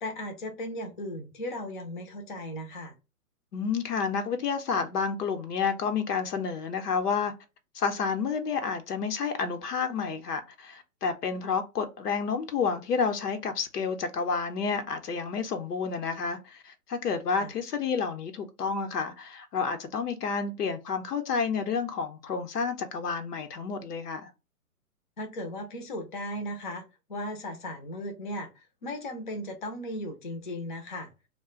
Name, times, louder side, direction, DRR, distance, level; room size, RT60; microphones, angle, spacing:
voice 1, 0.0-2.9 17.4-17.5 25.2-26.8 27.1-31.1, left 1 dB, 35° left, 0.5 m, -36 dB
voice 2, 3.5-7.3 7.7-24.3, left 5 dB, 85° left, 0.9 m, -30 dB
2.4 x 2.2 x 3.7 m
hypercardioid pair, 160°, 46 cm